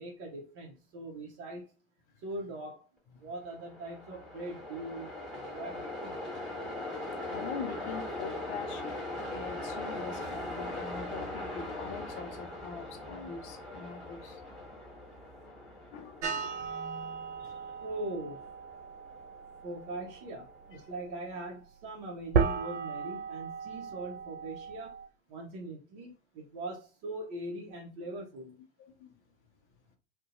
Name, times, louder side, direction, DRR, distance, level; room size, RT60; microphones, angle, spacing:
voice 1, 0.0-1.7 2.2-2.9 3.2-6.2 17.8-18.4 19.6-25.0 25.3-28.5, right 2 dB, 45° right, 0.7 m, -41 dB
Train, 3.4-20.6, left 1 dB, 5° left, 1.3 m, -41 dB
voice 2, 7.3-14.4 15.9-16.5 17.4-17.6 28.8-29.2, left 6 dB, 40° left, 0.5 m, -43 dB
sound 1, 16.2-25.1, right 5 dB, 80° right, 0.5 m, -36 dB
2.6 x 2.1 x 2.4 m
hypercardioid pair, 90°, 35 cm